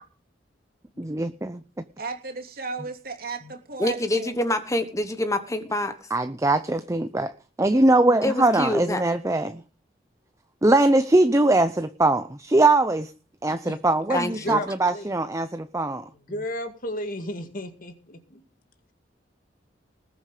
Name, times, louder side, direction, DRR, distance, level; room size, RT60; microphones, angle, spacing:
voice 1, 1.0-1.6 6.1-7.3 7.6-9.6 10.6-13.1 13.4-16.1, right 2 dB, 15° right, 11 dB, 0.7 m, -21 dB
voice 2, 2.0-4.4, right 4 dB, 55° right, 4 dB, 3.0 m, -35 dB
voice 3, 3.8-6.0 8.2-9.0 14.1-14.6, left 1 dB, 15° left, 10 dB, 1.1 m, -26 dB
voice 4, 14.1-15.1 16.1-18.4, left 1 dB, 50° left, 8 dB, 2.1 m, -34 dB
20.0 x 8.4 x 5.1 m, 0.34 s
head